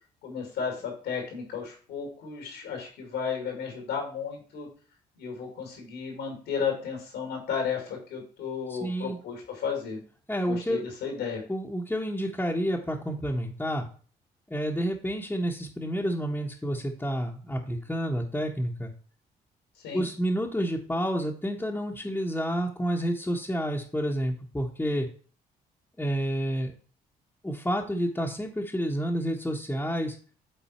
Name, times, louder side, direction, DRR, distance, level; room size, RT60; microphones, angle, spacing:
voice 1, 0.2-4.7 5.2-10.0 10.5-11.4 19.8-20.1, left 6 dB, 85° left, 2 dB, 2.5 m, -33 dB
voice 2, 8.7-9.2 10.3-10.8 11.5-13.9 14.5-18.9 19.9-25.1 26.0-26.7 27.4-30.2, equal, 10° left, -3 dB, 1.1 m, -29 dB
9.0 x 3.9 x 4.3 m, 0.41 s
supercardioid pair, 60°, 18 cm